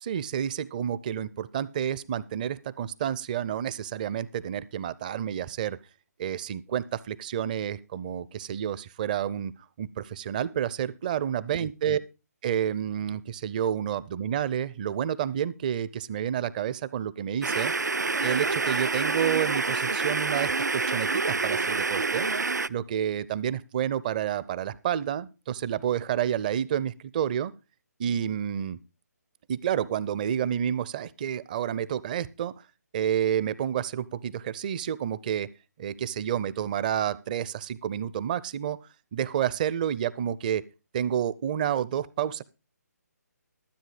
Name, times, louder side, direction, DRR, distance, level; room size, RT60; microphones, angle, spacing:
voice 1, 0.0-5.8 6.2-9.5 9.8-12.0 12.4-17.7 18.2-22.3 22.7-27.5 28.0-28.8 29.5-32.5 32.9-35.5 35.8-38.8 39.1-40.6 40.9-42.4, right 9 dB, 30° right, 18 dB, 0.6 m, -29 dB
sound 1, 17.4-22.7, right 4 dB, 80° right, 0.5 m, -27 dB
13.0 x 7.6 x 4.9 m, 0.29 s
figure-of-eight pair, 145°, 9 cm